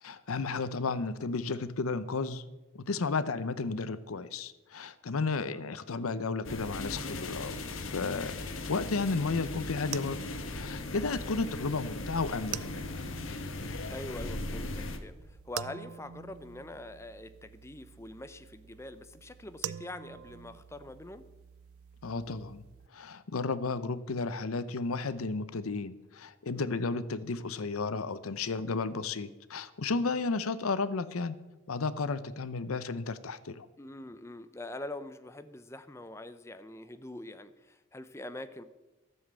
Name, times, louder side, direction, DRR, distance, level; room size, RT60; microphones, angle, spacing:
voice 1, 0.0-2.4 2.7-10.2 10.5-12.8 22.0-22.6 22.9-31.4 31.7-33.7, left 4 dB, 85° left, 15 dB, 0.7 m, -33 dB
sound 1, 6.4-15.0, left 2 dB, 70° left, 1.2 m, -38 dB
sound 2, 9.3-22.9, right 10 dB, 90° right, 0.4 m, -46 dB
voice 2, 13.9-21.3 26.6-26.8 33.8-38.6, left 1 dB, 15° left, 10 dB, 0.5 m, -44 dB
13.5 x 7.3 x 7.5 m, 1.1 s
head